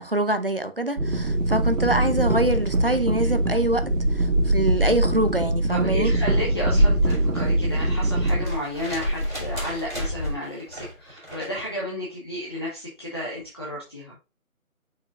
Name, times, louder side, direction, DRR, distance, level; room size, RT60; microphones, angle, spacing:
voice 1, 0.0-6.1, right 1 dB, 40° right, 0.6 m, -25 dB
sound 1, 1.0-8.5, right 2 dB, 70° right, 1.8 m, -23 dB
sound 2, 1.3-10.4, equal, 60° left, 1.6 m, -29 dB
voice 2, 2.1-2.4 3.2-3.3 5.7-14.2, left 1 dB, 20° left, 1.1 m, -32 dB
sound 3, 6.9-11.7 13.4-13.5, equal, 5° right, 1.5 m, -40 dB
6.6 x 5.7 x 2.5 m
figure-of-eight pair, 165°, 43 cm